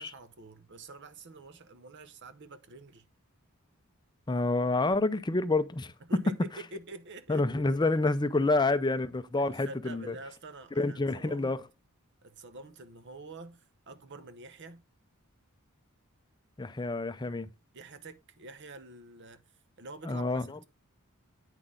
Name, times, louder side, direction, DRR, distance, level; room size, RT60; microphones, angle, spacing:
voice 1, 0.0-3.0 6.0-7.4 9.4-11.6 12.2-14.8 17.7-19.4 19.8-20.6, right 3 dB, 55° right, 0.9 m, -47 dB
voice 2, 4.3-5.9 7.3-10.1 10.8-11.6 16.6-17.5 20.1-20.4, left 2 dB, 20° left, 0.5 m, -28 dB
9.0 x 6.1 x 3.7 m
head